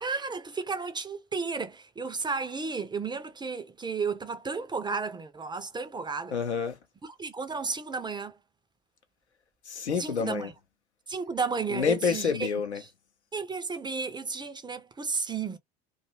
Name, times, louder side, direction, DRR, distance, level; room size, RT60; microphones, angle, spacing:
voice 1, 0.0-6.3 7.2-8.4 10.0-10.5 11.1-12.5 13.3-15.6, right 4 dB, 15° right, 0.5 m, -33 dB
voice 2, 6.3-6.8 9.6-10.5 11.7-12.8, left 6 dB, 85° left, 0.7 m, -28 dB
2.6 x 2.3 x 2.8 m
figure-of-eight pair, 65°, 33 cm